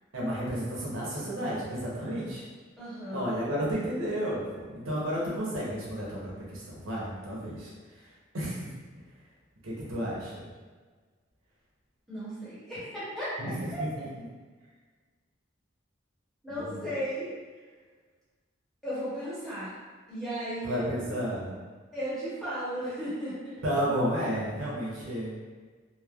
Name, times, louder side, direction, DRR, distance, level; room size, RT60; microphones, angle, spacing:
voice 1, 0.1-2.4 3.1-7.7 8.3-8.7 9.6-10.3 13.4-14.0 16.5-16.8 20.6-21.5 23.6-25.4, equal, 85° right, -6 dB, 0.8 m, -32 dB
voice 2, 2.8-3.4 12.1-13.3 13.7-13.8 16.4-17.6 18.8-19.7 20.1-21.1 21.9-23.6, equal, ahead, -12 dB, 0.9 m, -35 dB
3.1 x 2.0 x 2.3 m, 1.4 s
head